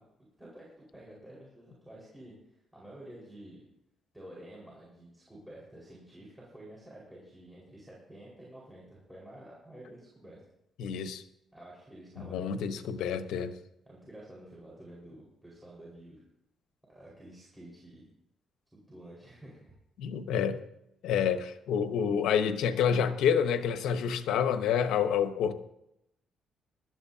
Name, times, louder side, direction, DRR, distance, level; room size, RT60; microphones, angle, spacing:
voice 1, 0.4-3.6 4.1-10.4 11.5-12.4 12.6-12.8 13.8-16.2 16.9-18.0 18.9-19.7, right 1 dB, 5° right, -5 dB, 4.9 m, -50 dB
voice 2, 10.8-11.2 12.3-13.5 20.0-20.6 21.0-25.5, left 7 dB, 85° left, 9 dB, 1.0 m, -28 dB
20.5 x 12.5 x 2.8 m, 0.82 s
cardioid pair, 90°, 0 cm